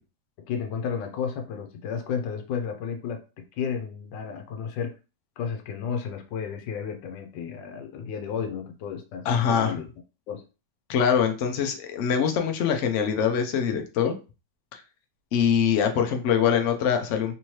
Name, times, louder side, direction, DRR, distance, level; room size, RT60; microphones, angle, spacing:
voice 1, 0.4-3.2 3.5-5.0 5.4-9.9 10.3-10.4, left 7 dB, 90° left, 5 dB, 1.3 m, -32 dB
voice 2, 9.3-9.8 10.9-14.1 14.7-14.8 15.3-17.3, left 7 dB, 70° left, 6 dB, 0.7 m, -23 dB
3.4 x 2.8 x 3.1 m, 0.31 s
omnidirectional pair, 1.9 m